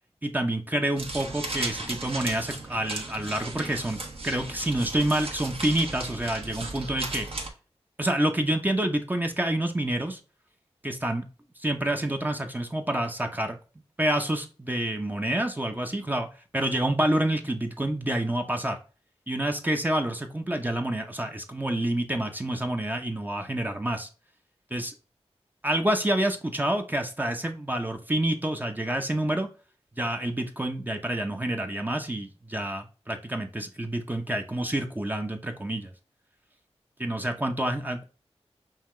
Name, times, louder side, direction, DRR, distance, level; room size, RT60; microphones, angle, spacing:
voice 1, 0.2-7.3 8.0-10.2 10.8-11.3 11.6-13.6 14.0-16.3 16.5-18.8 19.3-24.1 24.7-24.9 25.6-29.5 30.0-35.9 37.0-38.0, right 1 dB, 15° right, 4 dB, 0.7 m, -28 dB
sound 1, 1.0-7.5, right 2 dB, 55° right, 1.2 m, -36 dB
5.6 x 2.3 x 3.1 m, 0.35 s
wide cardioid pair, 60°, 11 cm